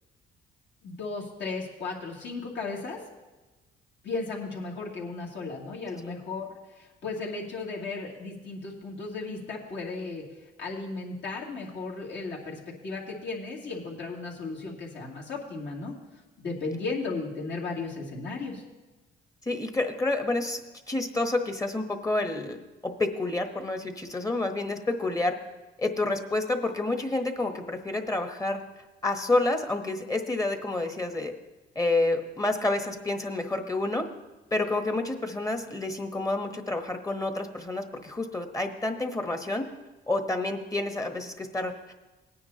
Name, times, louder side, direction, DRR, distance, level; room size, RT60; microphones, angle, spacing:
voice 1, 0.8-3.0 4.0-10.2 10.6-15.9 16.4-18.6, left 3 dB, 65° left, -3 dB, 2.6 m, -35 dB
voice 2, 19.4-25.3 25.8-28.6 29.0-31.3 31.7-34.1 34.5-39.7 40.1-41.9, left 2 dB, 15° left, 6 dB, 1.1 m, -29 dB
18.5 x 9.6 x 2.8 m, 1.2 s
cardioid pair, 90°, 20 cm